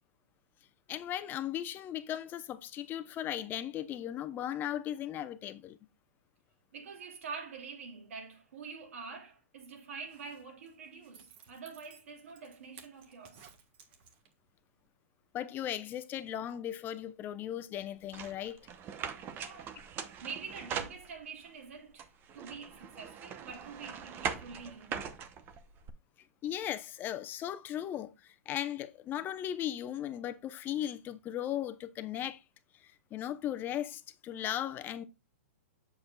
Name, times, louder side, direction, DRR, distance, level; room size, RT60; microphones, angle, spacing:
voice 1, 0.9-5.8 15.3-18.7 26.4-32.4 32.8-35.0, left 11 dB, 25° left, 0.8 m, -37 dB
voice 2, 6.7-13.5 19.4-25.2, right 5 dB, 75° right, 3.0 m, -46 dB
Zipper (clothing), 9.9-14.5 14.9-15.0, right 7 dB, 50° right, 1.5 m, -58 dB
sound 1, 18.1-21.5 22.0-25.9, right 7 dB, 30° right, 0.8 m, -41 dB
7.8 x 7.2 x 2.3 m
hypercardioid pair, 130°, 8 cm